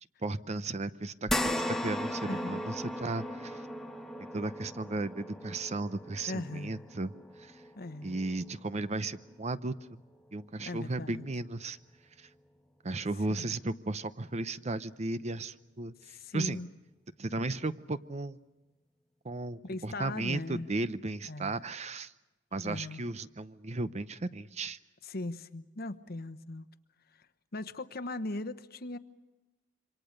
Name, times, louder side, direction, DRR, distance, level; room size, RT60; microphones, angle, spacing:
voice 1, 0.2-3.6 4.3-7.1 7.4-7.5 8.0-9.8 10.3-11.8 12.2-12.3 12.8-16.6 17.2-18.4 19.2-22.1 22.5-24.8, right 2 dB, 35° right, 0.7 m, -35 dB
sound 1, 1.3-9.9 10.3-10.4 11.9-12.0, left 1 dB, ahead, 1.1 m, -38 dB
voice 2, 2.3-2.6 6.3-6.9 7.8-8.2 10.6-11.3 13.4-13.5 16.0-16.7 19.6-20.7 21.3-21.6 22.6-23.1 25.0-26.7 27.5-29.0, left 2 dB, 55° left, 1.0 m, -39 dB
27.0 x 25.0 x 6.6 m
head